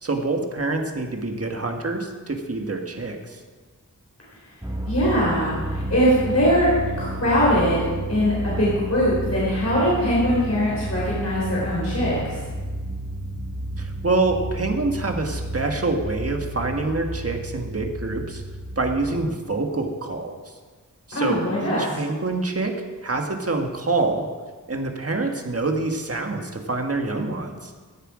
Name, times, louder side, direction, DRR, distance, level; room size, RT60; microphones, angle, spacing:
voice 1, 0.0-3.4 13.8-18.4 18.8-20.4 21.1-22.7 23.0-24.2 24.7-27.7, right 3 dB, 45° right, 3 dB, 1.6 m, -26 dB
sound 1, 4.6-19.1, right 1 dB, 10° right, 1.6 m, -31 dB
voice 2, 4.9-6.7 7.0-12.4 21.1-22.0, equal, 50° left, -7 dB, 4.1 m, -22 dB
16.0 x 7.9 x 5.0 m, 1.4 s
wide cardioid pair, 75°, 33 cm